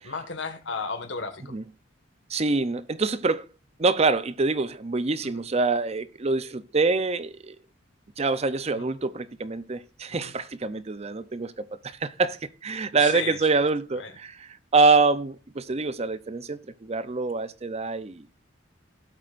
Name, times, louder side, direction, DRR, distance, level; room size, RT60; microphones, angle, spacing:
voice 1, 0.0-1.5 5.2-5.4 8.7-8.9 10.1-10.3 13.0-13.4 13.9-14.1, left 4 dB, 70° left, 1.7 m, -34 dB
voice 2, 2.3-3.5 3.8-7.6 8.2-18.3, right 3 dB, 35° right, 0.6 m, -25 dB
17.5 x 8.1 x 2.5 m
head